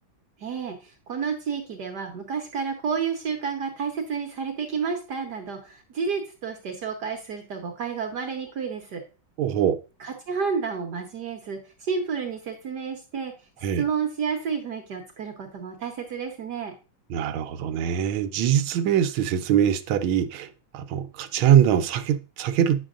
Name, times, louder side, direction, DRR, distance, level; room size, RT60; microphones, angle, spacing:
voice 1, 0.4-9.0 10.0-13.3 13.8-16.7, right 6 dB, 60° right, 1.3 m, -30 dB
voice 2, 9.4-9.8 13.6-13.8 17.1-22.8, right 9 dB, 80° right, 1.4 m, -23 dB
9.0 x 6.2 x 2.4 m
omnidirectional pair, 2.2 m